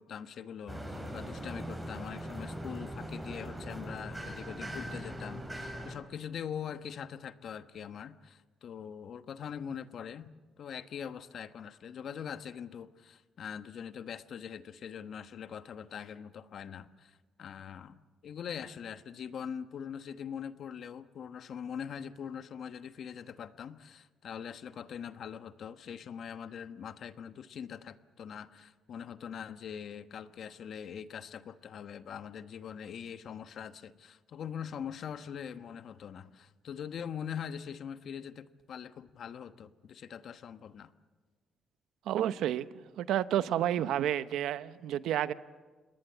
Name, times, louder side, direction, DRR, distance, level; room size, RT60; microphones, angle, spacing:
voice 1, 0.0-40.9, left 8 dB, 65° left, 11 dB, 1.1 m, -42 dB
sound 1, 0.7-5.9, equal, 10° right, 6.7 m, -40 dB
voice 2, 42.1-42.7 43.0-45.3, right 11 dB, 85° right, 14 dB, 0.8 m, -30 dB
28.0 x 20.0 x 8.0 m, 1.3 s
cardioid pair, 90°, 0 cm